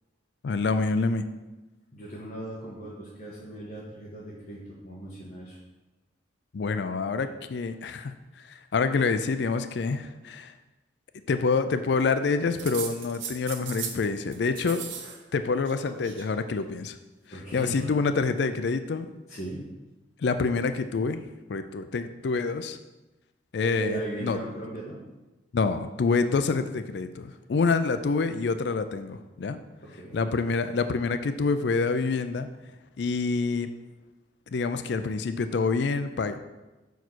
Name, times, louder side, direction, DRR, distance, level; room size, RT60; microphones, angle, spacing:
voice 1, 0.4-1.2 6.5-10.5 11.3-14.8 15.3-17.0 17.5-19.1 20.2-22.8 23.5-24.4 25.5-29.6 30.1-32.5 33.0-33.7 34.5-36.4, left 4 dB, 65° left, 10 dB, 0.4 m, -27 dB
voice 2, 1.9-5.6 15.0-15.1 17.3-17.9 19.3-19.7 23.7-25.0 29.8-30.2, right 1 dB, 40° left, -7 dB, 1.4 m, -38 dB
sound 1, 12.6-14.1 14.3-15.2 15.4-16.3 17.3-18.0, right 7 dB, 85° right, 0.8 m, -38 dB
5.6 x 4.6 x 6.2 m, 1.1 s
head